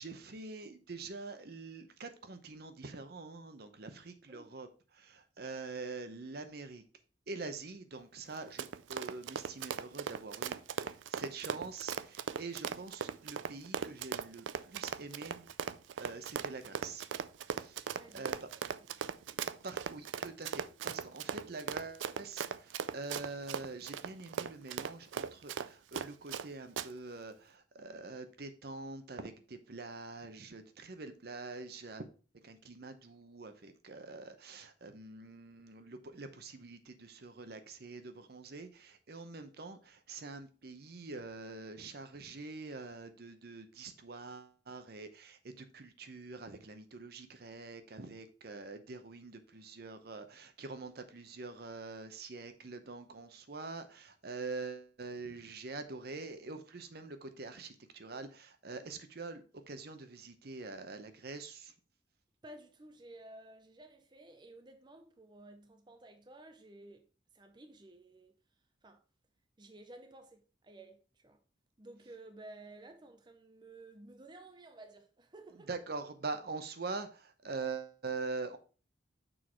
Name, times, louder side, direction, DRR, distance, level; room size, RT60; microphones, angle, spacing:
voice 1, 0.0-4.7 4.9-6.8 7.3-15.5 16.0-17.1 17.5-18.5 19.3-32.1 32.4-61.7 75.7-78.6, right 3 dB, 55° right, 0.7 m, -45 dB
Run, 8.3-26.5 26.8-26.9, right 7 dB, 85° right, 0.4 m, -38 dB
voice 2, 17.9-18.3 18.8-18.9 62.4-67.1 67.3-68.3 68.8-69.0 69.6-71.4 71.8-75.7, right 2 dB, 25° right, 0.6 m, -54 dB
6.3 x 4.6 x 4.6 m
head